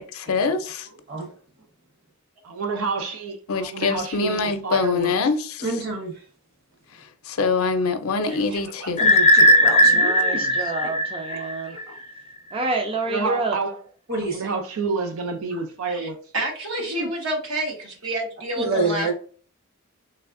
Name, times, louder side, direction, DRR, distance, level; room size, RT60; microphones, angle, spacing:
voice 1, 0.1-0.9 3.5-5.7 6.9-9.1, left 4 dB, 90° left, 0.5 m, -24 dB
voice 2, 2.4-5.1 9.8-10.6 13.1-13.7 14.2-16.2 16.9-17.1, right 4 dB, 90° right, 0.5 m, -29 dB
voice 3, 5.6-6.1 9.0-10.0 11.9-12.0 14.1-14.5 18.6-19.1, right 3 dB, 50° right, 1.4 m, -27 dB
voice 4, 8.2-8.9 9.8-9.9 10.6-10.7 11.4-11.8 15.5-16.1 16.3-19.1, right 1 dB, 75° right, 1.1 m, -30 dB
sound 1, 9.0-11.8, equal, 30° left, 0.5 m, -17 dB
voice 5, 9.8-11.8 12.5-13.6, right 3 dB, 25° right, 0.4 m, -28 dB
3.2 x 3.2 x 2.5 m
head